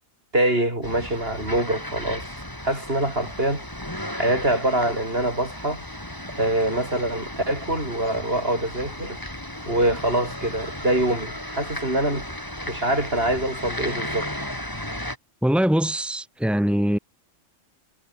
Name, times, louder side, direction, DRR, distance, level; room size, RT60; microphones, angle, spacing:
voice 1, 0.3-2.3 2.6-3.6 4.1-5.8 6.4-9.2 9.7-12.3 12.7-14.3, right 1 dB, 50° right, 7.1 m, -24 dB
sound 1, 0.8-15.2, left 1 dB, 15° left, 5.1 m, -35 dB
voice 2, 15.4-17.0, equal, ahead, 4.0 m, -22 dB
omnidirectional pair, 1.3 m